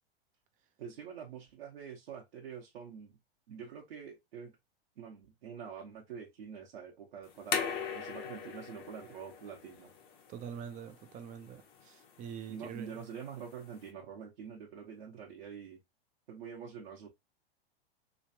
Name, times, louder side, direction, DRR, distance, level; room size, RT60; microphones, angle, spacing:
voice 1, 0.8-3.2 3.5-4.5 5.0-9.9 12.5-15.8 16.3-17.1, right 7 dB, 65° right, 1.2 m, -46 dB
sound 1, 7.2-13.9, left 7 dB, 30° left, 0.8 m, -41 dB
voice 2, 10.3-12.9, right 8 dB, 25° right, 0.6 m, -44 dB
3.2 x 3.2 x 2.7 m
hypercardioid pair, 105°, 30 cm